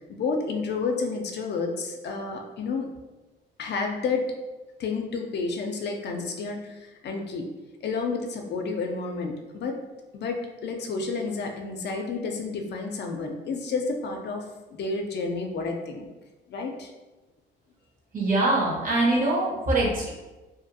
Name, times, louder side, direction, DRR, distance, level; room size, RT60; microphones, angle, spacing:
voice 1, 0.1-2.9 3.6-4.3 4.8-7.5 7.8-9.8 10.1-14.4 14.7-16.1 16.5-16.9, left 4 dB, 60° left, 3 dB, 0.4 m, -30 dB
voice 2, 18.1-20.1, right 2 dB, 45° right, -3 dB, 1.0 m, -23 dB
2.6 x 2.5 x 2.6 m, 1.1 s
cardioid pair, 90°, 20 cm